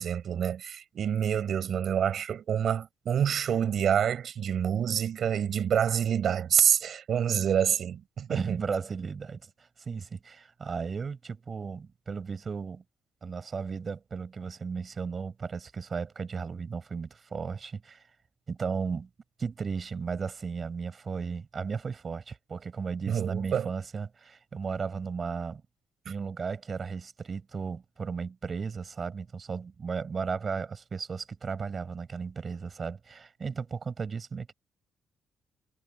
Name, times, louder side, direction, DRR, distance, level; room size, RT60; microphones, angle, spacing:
voice 1, 0.0-8.6 23.1-23.7, right 8 dB, 60° right, 5.5 m, -27 dB
voice 2, 8.3-12.8 13.2-18.0 18.5-19.1 19.4-25.6 26.1-34.5, right 5 dB, 40° right, 7.1 m, -35 dB
cardioid pair, 90°, 0 cm